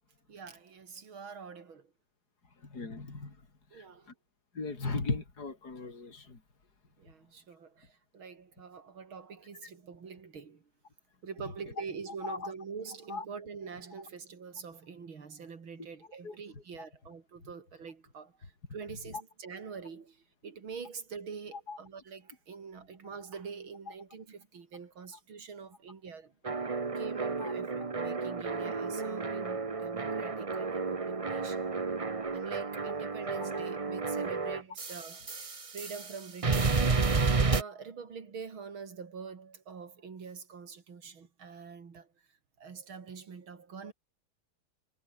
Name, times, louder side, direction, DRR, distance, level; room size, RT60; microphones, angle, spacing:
voice 1, 0.3-1.9 3.7-4.1 7.0-10.6 11.2-26.3 27.0-31.6 32.3-35.4 35.7-37.1 37.4-42.1 42.6-43.9, right 5 dB, 90° right, 3.6 m, -45 dB
voice 2, 2.7-3.4 3.7-3.8 4.5-6.4 12.2-12.5 13.1-13.2 16.2-16.3 16.8-16.9 21.7-21.8 27.4-27.5, left 3 dB, 50° left, 4.6 m, -37 dB
sound 1, 26.4-36.2 36.4-37.6, right 4 dB, 30° right, 0.6 m, -31 dB
omnidirectional pair, 2.2 m